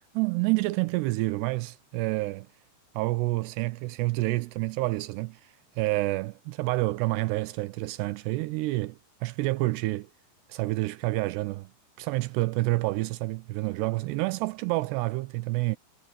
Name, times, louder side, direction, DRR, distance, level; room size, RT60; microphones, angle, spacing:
voice 1, 0.1-2.5 3.0-5.4 5.8-10.1 10.5-11.7 12.0-15.8, right 21 dB, 80° right, 2.6 m, -28 dB
omnidirectional pair, 5.0 m